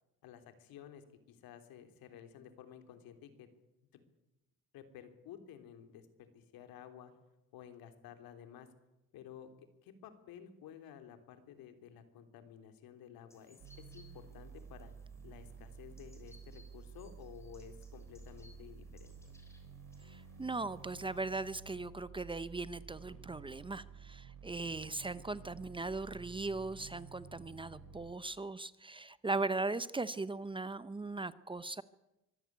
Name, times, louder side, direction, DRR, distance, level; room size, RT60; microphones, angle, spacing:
voice 1, 0.2-3.5 3.9-4.1 4.7-7.1 7.5-8.7 9.1-9.5 9.8-14.9 15.2-19.1, left 9 dB, 80° left, 8 dB, 3.5 m, -53 dB
sound 1, 13.3-21.6, left 1 dB, 5° left, 6.9 m, -67 dB
sound 2, 13.6-28.1, right 6 dB, 65° right, 4.3 m, -52 dB
voice 2, 20.1-31.8, right 3 dB, 15° right, 15 dB, 0.8 m, -39 dB
24.5 x 16.0 x 9.5 m, 0.92 s
cardioid pair, 125°, 35 cm